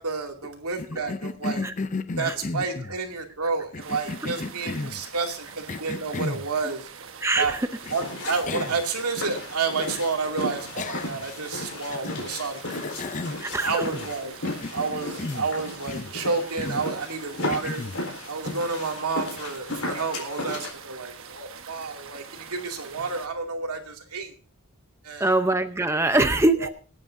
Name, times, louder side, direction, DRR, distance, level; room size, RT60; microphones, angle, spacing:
voice 1, 0.0-1.6 2.2-6.9 7.4-7.6 7.9-13.0 13.5-14.3 14.7-17.9 18.3-24.3 25.0-25.3 26.6-26.7, right 4 dB, 90° right, 2 dB, 2.5 m, -30 dB
Cough, 0.8-3.0 3.7-5.0 5.7-6.5 7.9-8.0 8.5-8.8 9.2-9.3 10.8-11.3 11.9-12.3 12.7-14.1 14.4-15.5 15.9-16.2 16.6-16.9 17.5-18.0, left 3 dB, 35° left, 0.5 m, -33 dB
sound 1, 3.8-23.3, right 6 dB, 60° right, 1.2 m, -44 dB
voice 2, 7.2-7.7 13.4-13.8 25.2-26.7, right 2 dB, 10° right, 8 dB, 0.6 m, -23 dB
sound 2, 7.8-20.7, left 2 dB, 75° left, 4.2 m, -35 dB
26.0 x 9.0 x 2.6 m, 0.35 s
head